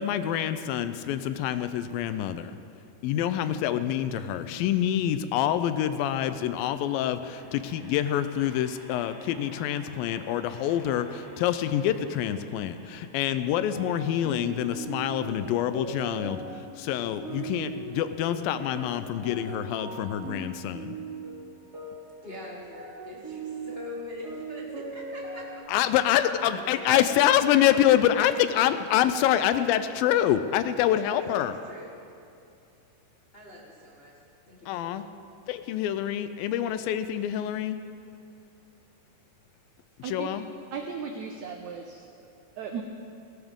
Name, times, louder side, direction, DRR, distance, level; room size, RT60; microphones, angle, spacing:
voice 1, 0.0-2.5 3.0-21.0 25.7-31.6 34.7-35.0 35.5-37.8 40.0-40.5, left 11 dB, 85° left, 11 dB, 2.4 m, -26 dB
sound 1, 6.5-17.5, equal, 15° right, 3.7 m, -54 dB
sound 2, 13.5-25.6, right 4 dB, 30° right, 2.7 m, -40 dB
voice 2, 22.2-25.7 26.2-28.8 30.7-32.0 33.3-34.2 34.5-35.1, left 1 dB, 60° left, -4 dB, 0.6 m, -43 dB
voice 3, 40.7-42.0 42.6-42.8, right 6 dB, 75° right, 4 dB, 1.7 m, -36 dB
17.5 x 17.5 x 3.7 m, 2.6 s
omnidirectional pair, 4.1 m